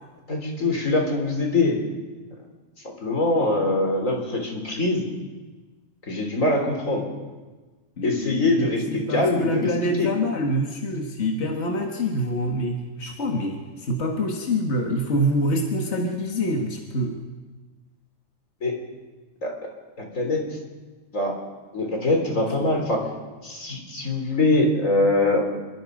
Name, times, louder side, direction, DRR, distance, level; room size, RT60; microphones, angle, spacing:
voice 1, 0.3-1.8 2.8-5.1 6.1-7.0 8.0-9.7 10.0-10.1 18.6-18.8 19.4-19.7 20.0-20.4 21.1-21.4 21.7-23.1 23.4-25.4, left 2 dB, 80° left, 2 dB, 4.1 m, -23 dB
voice 2, 8.0-17.2, equal, 60° left, 1 dB, 2.0 m, -26 dB
26.5 x 23.5 x 5.2 m, 1.3 s
omnidirectional pair, 1.3 m